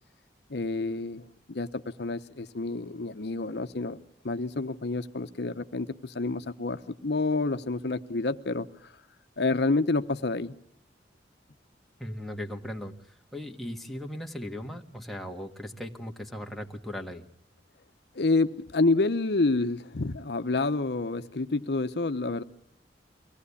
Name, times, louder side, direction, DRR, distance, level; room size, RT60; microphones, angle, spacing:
voice 1, 0.5-8.9 9.4-10.5 18.1-22.4, left 3 dB, 65° left, 9 dB, 0.8 m, -28 dB
voice 2, 12.0-12.9 13.3-17.2, equal, ahead, 2 dB, 1.5 m, -38 dB
24.0 x 18.0 x 8.4 m, 0.74 s
head